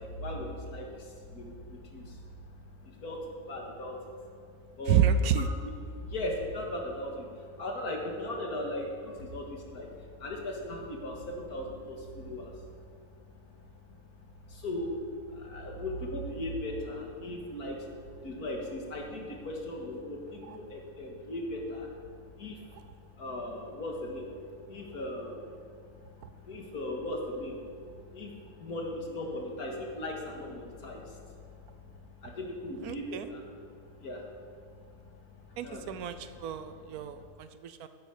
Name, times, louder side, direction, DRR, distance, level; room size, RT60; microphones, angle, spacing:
voice 1, 0.0-5.0 5.6-37.2, left 1 dB, 70° left, 0 dB, 2.4 m, -39 dB
voice 2, 4.9-5.5 20.5-20.6 32.8-33.3 35.6-37.9, right 7 dB, 75° right, 11 dB, 1.1 m, -29 dB
13.0 x 10.5 x 5.0 m, 2.3 s
omnidirectional pair, 1.6 m